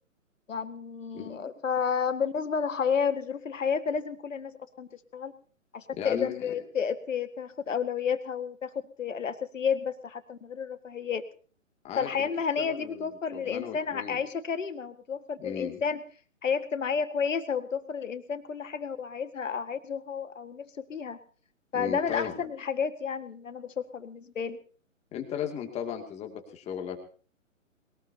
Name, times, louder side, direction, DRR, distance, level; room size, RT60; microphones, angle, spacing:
voice 1, 0.5-5.3 5.7-8.7 9.0-11.2 12.0-16.0 16.4-21.2 21.7-24.6, left 6 dB, 70° left, 11 dB, 1.8 m, -31 dB
voice 2, 5.9-6.5 11.8-12.3 12.6-14.2 15.4-15.8 21.7-22.3 25.1-27.0, left 8 dB, 15° left, 4 dB, 2.3 m, -36 dB
21.5 x 19.0 x 2.8 m, 0.41 s
figure-of-eight pair, 135°, 40 cm